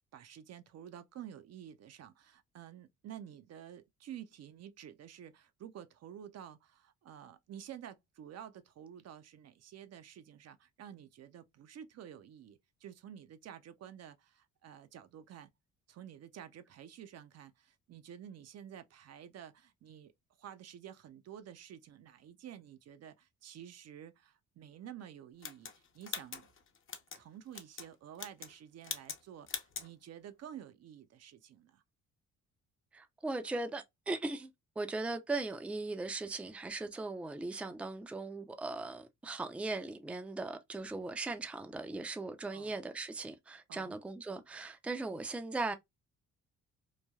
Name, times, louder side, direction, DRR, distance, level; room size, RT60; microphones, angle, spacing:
voice 1, 0.1-15.5 15.9-20.1 20.4-26.5 27.1-31.8 42.5-42.8 43.7-43.9, right 9 dB, 55° right, 0.5 m, -51 dB
sound 1, 25.4-27.2 27.5-27.9 28.1-28.6 28.8-29.2 29.5-29.9, left 6 dB, 45° left, 0.7 m, -42 dB
voice 2, 32.9-34.5 34.8-45.7, right 3 dB, 5° right, 0.4 m, -38 dB
3.2 x 2.2 x 2.2 m
cardioid pair, 90°, 30 cm